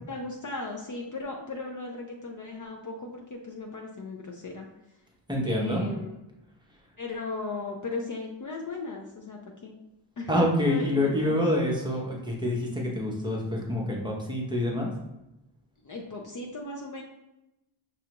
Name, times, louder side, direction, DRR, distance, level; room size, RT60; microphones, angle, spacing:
voice 1, 0.0-4.7 5.4-6.2 7.0-9.8 10.2-11.5 15.8-17.0, left 3 dB, 40° left, 0 dB, 0.5 m, -37 dB
voice 2, 5.3-5.8 10.3-14.9, left 1 dB, 10° right, -2 dB, 0.7 m, -27 dB
6.1 x 2.3 x 2.9 m, 0.93 s
wide cardioid pair, 145°, 50 cm